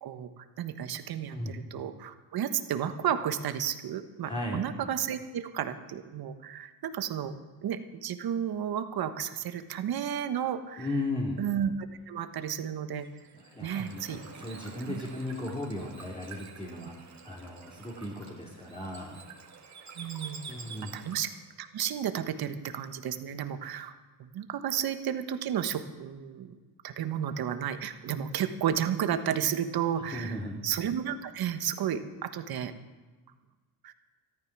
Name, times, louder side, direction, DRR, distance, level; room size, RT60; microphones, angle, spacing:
voice 1, 0.0-7.3 7.6-10.9 11.4-11.7 12.1-13.1 13.6-14.2 14.9-15.0 16.8-16.9 20.0-20.6 20.9-21.3 21.6-26.6 26.8-30.4 30.6-32.7 33.8-33.9, right 9 dB, 60° right, 9 dB, 1.3 m, -32 dB
voice 2, 4.2-4.6 10.8-11.4 13.3-19.2 20.5-20.9 30.1-30.6, left 1 dB, 15° left, -3 dB, 3.0 m, -36 dB
Bird / Water, 13.0-21.5, right 5 dB, 40° right, 2.2 m, -49 dB
13.5 x 12.0 x 6.1 m, 1.3 s
supercardioid pair, 70°, 41 cm